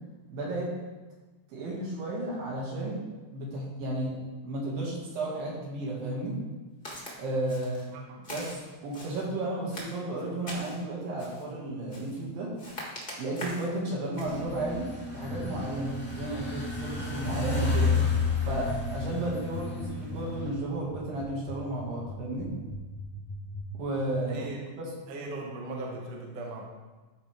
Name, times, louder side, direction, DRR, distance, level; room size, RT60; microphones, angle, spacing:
voice 1, 0.3-0.7 1.5-3.0 3.3-4.2 4.4-6.3 7.2-7.9 8.3-8.6 8.8-12.5 13.2-17.9 18.5-22.5 23.7-24.5 24.8-24.9, right 1 dB, 75° right, -4 dB, 3.7 m, -33 dB
Walk footsteps, 6.8-7.1 7.5-7.9 8.2-9.2 9.7-10.8 11.2-11.5 11.9-12.2 12.6-13.7 14.1-14.4, left 1 dB, 60° left, 0.5 m, -42 dB
sound 1, 14.2-20.5, left 4 dB, 5° left, 0.8 m, -31 dB
sound 2, 15.2-23.6, left 2 dB, 75° left, 3.1 m, -40 dB
voice 2, 24.3-24.6 25.1-26.7, right 2 dB, 60° right, -1 dB, 1.9 m, -38 dB
13.5 x 5.0 x 3.5 m, 1.3 s
omnidirectional pair, 4.1 m